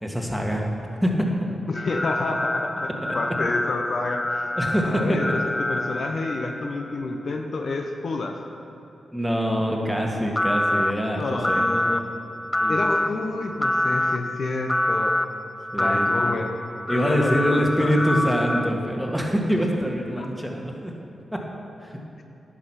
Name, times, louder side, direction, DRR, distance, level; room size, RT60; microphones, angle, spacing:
voice 1, 0.0-0.7 1.0-1.3 3.0-3.2 4.6-5.2 9.1-11.7 12.6-12.8 15.7-16.4 16.9-20.9 21.3-21.4 21.8-22.2, equal, ahead, 0 dB, 1.7 m, -25 dB
voice 2, 1.7-4.4 4.8-8.3 11.2-12.0 12.7-15.1 15.8-16.6 16.9-18.0 20.2-20.3, left 3 dB, 65° left, 4 dB, 0.7 m, -29 dB
sound 1, 1.7-7.1 10.4-10.9 11.4-12.0 12.5-13.1 13.6-14.2 14.7-15.3 15.8-16.3 16.9-18.7, left 1 dB, 20° left, 0.5 m, -25 dB
10.5 x 6.4 x 5.7 m, 2.7 s
supercardioid pair, 45°, 0 cm